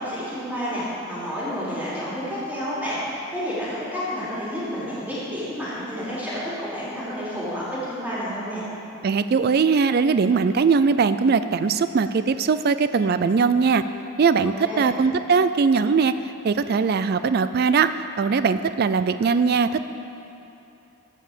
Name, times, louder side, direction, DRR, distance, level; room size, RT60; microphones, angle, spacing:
voice 1, 0.0-8.6 14.4-14.9, equal, 5° right, -10 dB, 3.1 m, -30 dB
voice 2, 9.0-13.8 14.2-16.1 16.4-17.9 18.2-19.8, right 5 dB, 45° right, 12 dB, 0.3 m, -20 dB
15.0 x 5.4 x 7.4 m, 3.0 s
head